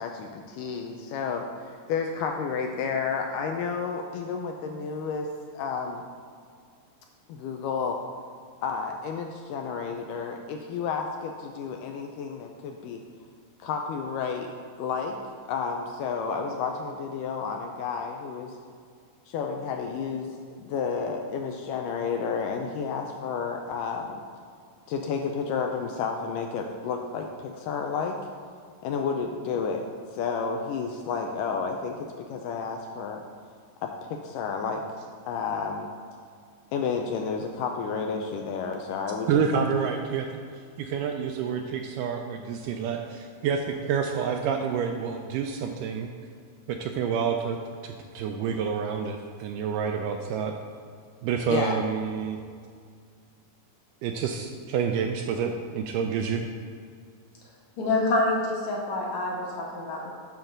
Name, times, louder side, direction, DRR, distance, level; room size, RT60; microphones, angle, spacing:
voice 1, 0.0-5.3 5.5-6.0 7.3-8.0 8.6-13.0 13.6-14.5 14.8-15.2 15.5-18.6 19.3-20.3 20.6-24.2 24.9-28.2 28.8-33.2 33.8-34.8 35.2-35.9 36.7-39.6 51.5-51.8, left 5 dB, 80° left, 3 dB, 2.0 m, -31 dB
voice 2, 39.3-40.3 40.8-46.1 46.7-50.6 51.2-52.4 54.0-56.5, right 6 dB, 80° right, 4 dB, 1.9 m, -28 dB
voice 3, 57.8-60.2, left 2 dB, 60° left, -4 dB, 2.3 m, -27 dB
9.2 x 3.8 x 6.5 m, 2.1 s
omnidirectional pair, 4.1 m